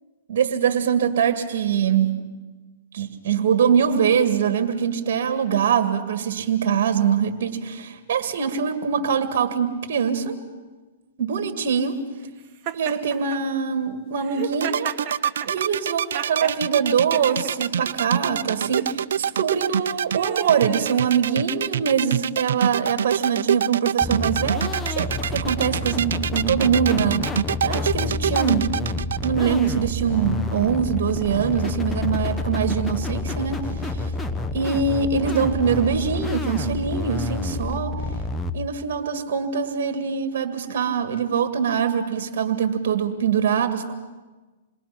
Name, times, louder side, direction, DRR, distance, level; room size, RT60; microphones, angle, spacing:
voice 1, 0.3-2.2 2.9-10.4 11.2-12.0 12.7-14.9 15.5-27.4 27.6-28.7 29.2-34.1 34.5-37.9 38.5-43.9, right 7 dB, 60° right, 8 dB, 2.1 m, -23 dB
Laughter, 12.6-13.4 14.2-16.6 17.1-17.9 18.6-18.9 19.7-21.9, right 9 dB, 35° right, 1.7 m, -33 dB
sound 1, 14.5-29.3, right 8 dB, 75° right, 0.6 m, -25 dB
sound 2, 24.0-38.5, left 3 dB, 10° left, 1.0 m, -28 dB
28.0 x 21.5 x 5.9 m, 1.3 s
hypercardioid pair, 140°, 0 cm